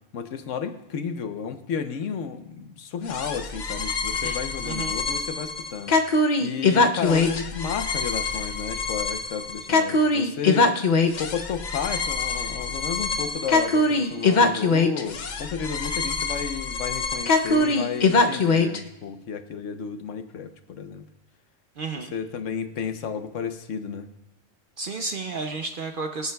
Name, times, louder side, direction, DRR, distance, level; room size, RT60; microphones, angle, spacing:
voice 1, 0.1-6.0 6.4-10.8 11.2-21.0 21.9-24.1, left 6 dB, 70° left, 8 dB, 1.1 m, -32 dB
sound 1, 3.1-18.8, left 3 dB, 45° left, 0.6 m, -23 dB
voice 2, 4.6-5.0 21.8-22.1 24.8-26.3, right 3 dB, 55° right, 6 dB, 0.6 m, -32 dB
23.5 x 8.2 x 2.3 m, 0.90 s
omnidirectional pair, 1.4 m